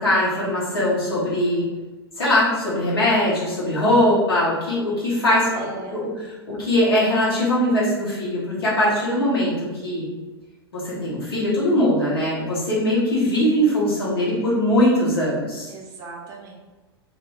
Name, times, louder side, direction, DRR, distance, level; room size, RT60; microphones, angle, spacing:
voice 1, 0.0-1.6 2.2-6.1 6.5-10.0 10.7-15.7, left 1 dB, 70° left, -8 dB, 1.3 m, -21 dB
voice 2, 5.5-6.0 9.8-10.0 15.7-16.6, right 3 dB, 30° right, -1 dB, 0.5 m, -38 dB
2.8 x 2.0 x 3.1 m, 1.2 s
figure-of-eight pair, 90°, 13 cm